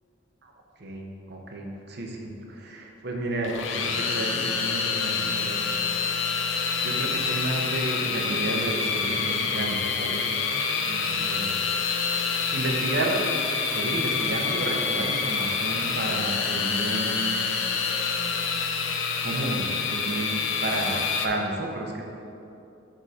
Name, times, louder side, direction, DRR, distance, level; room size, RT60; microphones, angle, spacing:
voice 1, 0.8-5.7 6.8-10.4 10.9-11.5 12.5-13.2 13.7-17.3 19.2-22.0, right 2 dB, 55° right, 1 dB, 0.9 m, -32 dB
sound 1, 3.4-21.3, left 5 dB, 75° left, 0.6 m, -27 dB
6.9 x 3.8 x 6.3 m, 2.7 s
head